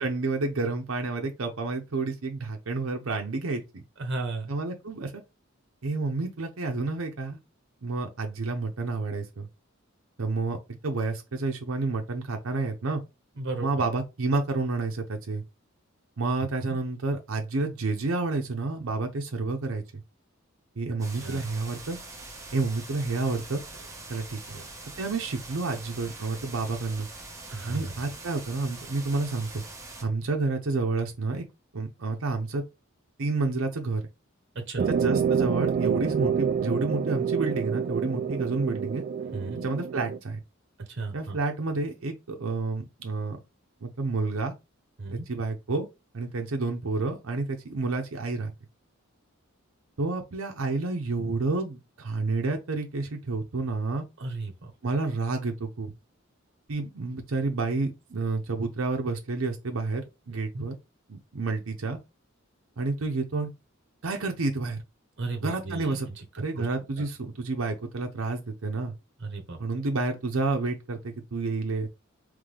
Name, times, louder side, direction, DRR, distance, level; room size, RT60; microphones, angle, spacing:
voice 1, 0.0-3.8 4.5-5.2 5.8-7.4 7.8-9.5 10.2-13.0 13.6-15.4 16.2-20.0 20.8-22.0 22.5-23.6 24.1-24.4 25.0-27.1 27.6-29.6 30.0-31.4 31.7-32.6 33.2-34.0 34.9-39.0 39.6-40.4 41.1-43.4 43.8-44.5 45.1-45.9 46.1-48.5 50.0-54.0 54.8-55.9 56.7-60.8 61.1-62.0 62.8-63.5 64.0-64.8 65.4-66.1 66.4-68.9 69.6-71.9, right 3 dB, 80° right, 0.7 m, -29 dB
voice 2, 4.0-4.5 13.4-13.8 16.6-16.8 21.2-21.4 24.5-24.7 27.5-27.8 34.7-34.9 39.3-39.7 41.0-41.4 45.0-45.3 54.2-54.5 60.5-60.7 65.2-66.0 66.6-66.7 69.2-69.6, right 3 dB, 60° right, 1.0 m, -34 dB
sound 1, 21.0-30.0, right 2 dB, 15° right, 1.4 m, -43 dB
sound 2, 34.8-40.2, right 7 dB, 45° right, 0.3 m, -27 dB
3.7 x 3.2 x 3.4 m
head